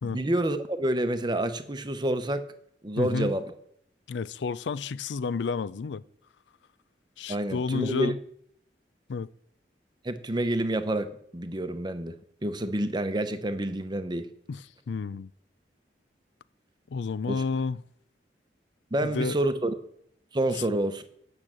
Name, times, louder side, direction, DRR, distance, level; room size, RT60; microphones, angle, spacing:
voice 1, 0.0-2.4 2.8-3.5 7.3-8.1 10.0-12.1 12.4-14.3 17.3-17.4 18.9-19.7 20.3-21.0, right 1 dB, 25° right, 0.7 m, -28 dB
voice 2, 3.0-3.3 4.1-6.0 7.2-8.2 9.1-9.3 14.5-15.3 16.9-17.8 19.0-19.4, left 5 dB, 85° left, 0.4 m, -31 dB
8.5 x 6.6 x 7.5 m
head